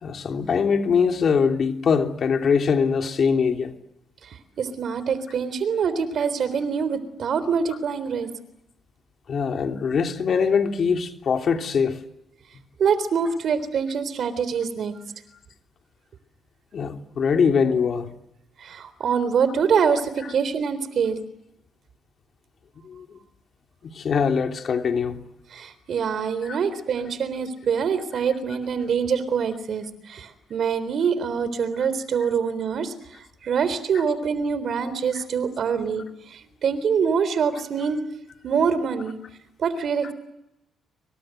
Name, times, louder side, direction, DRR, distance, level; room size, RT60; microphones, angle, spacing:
voice 1, 0.0-3.7 7.7-7.8 9.3-12.0 16.7-18.1 20.2-20.3 22.8-23.1 23.8-25.2 26.4-26.6 33.9-34.0 35.1-35.2 40.0-40.1, left 6 dB, 55° left, 3.2 m, -23 dB
voice 2, 4.2-8.3 12.8-15.0 18.6-21.2 25.5-32.9 33.4-38.0 38.4-39.2 39.6-40.1, right 6 dB, 60° right, 3.7 m, -25 dB
26.5 x 25.0 x 7.9 m
cardioid pair, 90°, 0 cm